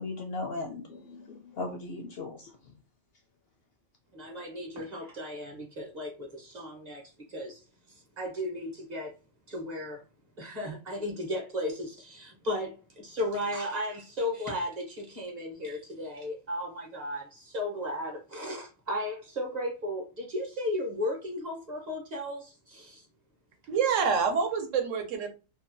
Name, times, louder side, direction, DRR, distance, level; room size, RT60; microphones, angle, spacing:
voice 1, 0.0-2.7, left 3 dB, 65° left, 0.6 m, -37 dB
voice 2, 4.1-7.0 7.3-7.6 7.9-9.1 9.5-10.0 10.4-23.1, left 1 dB, 40° right, 0.7 m, -35 dB
voice 3, 23.7-25.3, right 6 dB, 75° right, 0.9 m, -27 dB
2.8 x 2.2 x 2.5 m
omnidirectional pair, 1.4 m